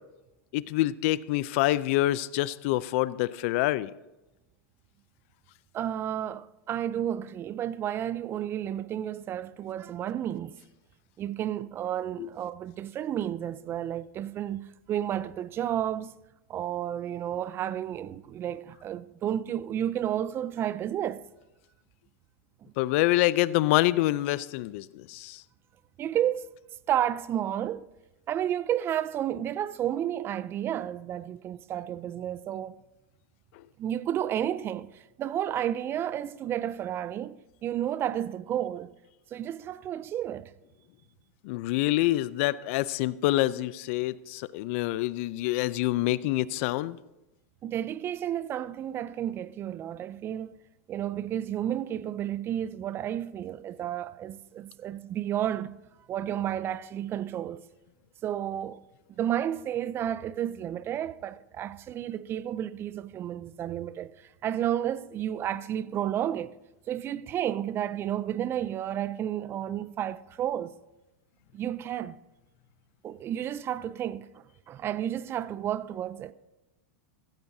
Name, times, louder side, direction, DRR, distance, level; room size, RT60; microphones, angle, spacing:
voice 1, 0.5-3.9 12.2-12.3 22.8-25.4 41.4-47.0, left 17 dB, 55° left, 0.5 m, -26 dB
voice 2, 5.7-10.6 11.2-16.1 16.5-21.2 22.6-22.7 26.0-26.5 26.9-27.9 28.3-32.8 33.8-38.9 39.3-40.5 47.6-50.6 50.9-55.7 56.1-57.6 58.2-58.8 59.1-64.1 64.4-66.5 66.9-70.7 71.5-72.2 73.0-76.3, right 10 dB, 30° right, 0.5 m, -31 dB
15.5 x 15.0 x 2.7 m
hypercardioid pair, 125°, 8 cm